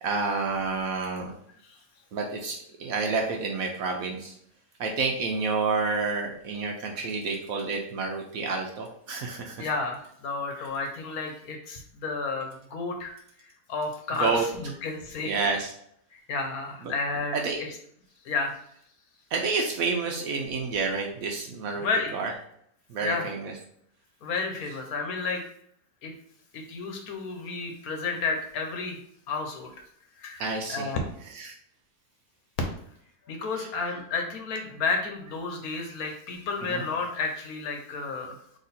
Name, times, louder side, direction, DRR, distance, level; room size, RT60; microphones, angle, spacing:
voice 1, 0.0-1.3 2.1-2.5 2.8-4.3 4.8-9.7 10.6-10.7 14.2-14.7 15.2-15.7 16.8-16.9 17.3-17.6 19.3-22.3 22.9-23.5 30.4-30.9 31.2-31.5 33.5-33.7 36.6-36.8, right 4 dB, 65° right, 2 dB, 1.0 m, -29 dB
voice 2, 9.6-15.4 16.1-17.8 18.2-18.6 21.7-22.1 23.0-23.3 24.2-25.4 26.0-26.1 26.5-29.0 29.3-29.7 30.2-31.0 33.3-38.4, left 4 dB, 65° left, 3 dB, 1.2 m, -32 dB
4.0 x 3.0 x 4.1 m, 0.67 s
omnidirectional pair, 1.8 m